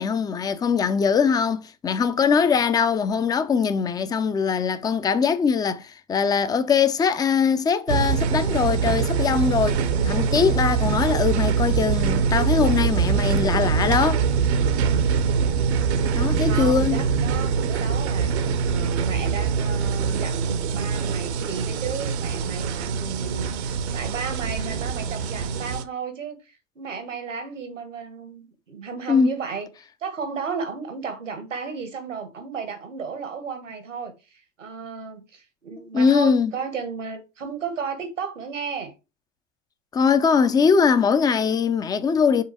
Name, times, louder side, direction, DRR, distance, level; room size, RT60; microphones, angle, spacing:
voice 1, 0.0-14.2 16.1-17.0 29.1-29.3 35.9-36.5 39.9-42.4, left 6 dB, 10° left, 0.4 m, -21 dB
sound 1, 7.9-25.8, right 6 dB, 60° right, 0.9 m, -23 dB
voice 2, 16.5-18.3 18.6-29.7 30.0-38.9, right 5 dB, 80° right, 1.5 m, -33 dB
5.6 x 4.1 x 4.7 m
figure-of-eight pair, 85°, 37 cm